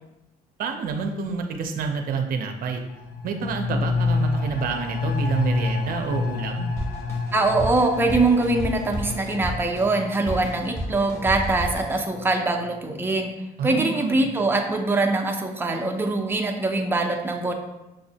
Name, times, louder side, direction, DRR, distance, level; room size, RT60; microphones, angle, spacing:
voice 1, 0.6-2.8 3.2-6.7 13.6-14.3, right 5 dB, 60° right, 5 dB, 0.6 m, -28 dB
sound 1, 2.9-12.3 12.6-12.7, left 4 dB, 70° left, 0.5 m, -29 dB
Drum kit, 6.8-12.1, right 1 dB, 15° left, 0.9 m, -33 dB
voice 2, 7.3-13.3 13.6-17.5, right 2 dB, 15° right, 2 dB, 0.5 m, -23 dB
6.1 x 2.1 x 2.7 m, 0.95 s
cardioid pair, 110°, 17 cm